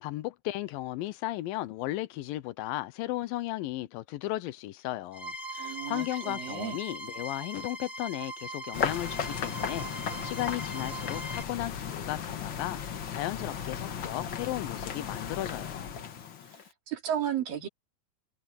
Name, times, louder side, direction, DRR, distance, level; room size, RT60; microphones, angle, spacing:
voice 1, 0.0-9.9 10.2-15.9, left 16 dB, 80° left, 2.4 m, -35 dB
sound 1, 5.1-11.4, right 1 dB, 10° right, 1.2 m, -40 dB
voice 2, 5.6-6.8 16.5-16.6 16.9-17.7, right 9 dB, 70° right, 4.5 m, -33 dB
sound 2, 8.7-16.7, left 8 dB, 65° left, 1.2 m, -35 dB
omnidirectional pair, 4.2 m